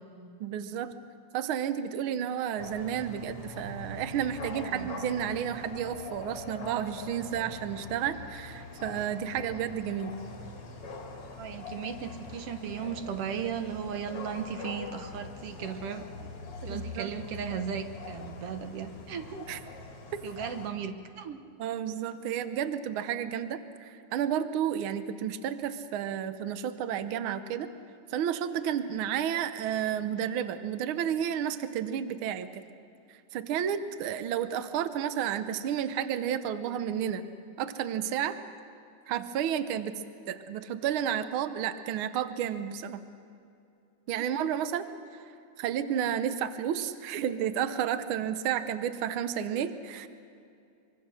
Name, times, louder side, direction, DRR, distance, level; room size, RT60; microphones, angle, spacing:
voice 1, 0.4-0.9 1.3-10.1 16.6-17.1 19.5-19.6 21.6-27.7 28.1-32.6 33.1-37.2 37.6-38.4 39.1-39.9 40.3-43.0 44.1-44.9 45.6-50.1, right 9 dB, 85° right, 11 dB, 1.1 m, -31 dB
sound 1, 2.6-20.7, left 3 dB, 50° left, 3.6 m, -43 dB
voice 2, 4.5-4.9 11.4-16.3 16.6-19.5 20.2-21.4, right 7 dB, 60° right, 8 dB, 1.8 m, -36 dB
24.5 x 24.5 x 6.4 m, 2.6 s
omnidirectional pair, 3.5 m